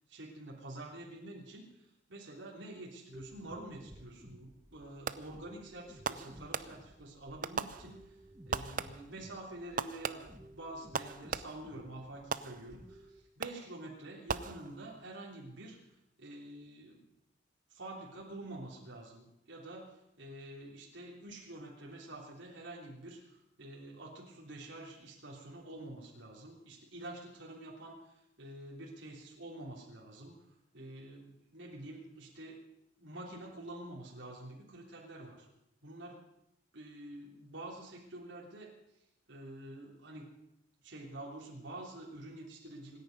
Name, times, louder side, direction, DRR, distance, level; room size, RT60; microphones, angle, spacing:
voice 1, 0.1-8.2 8.5-13.1 13.4-15.8 16.2-17.1 17.7-30.4 30.7-32.6 33.0-35.5 35.8-36.2 36.7-38.7 39.3-40.3 40.8-43.0, right 1 dB, 85° right, -3 dB, 3.3 m, -47 dB
sound 1, 3.1-13.2, right 1 dB, 15° right, 1.1 m, -56 dB
Fireworks, 5.1-5.5 6.0-7.0 7.4-8.2 8.5-9.2 9.8-11.8 12.3-12.9 13.4-13.8 14.3-15.0, right 5 dB, 45° right, 0.7 m, -39 dB
26.0 x 10.5 x 5.3 m, 0.82 s
head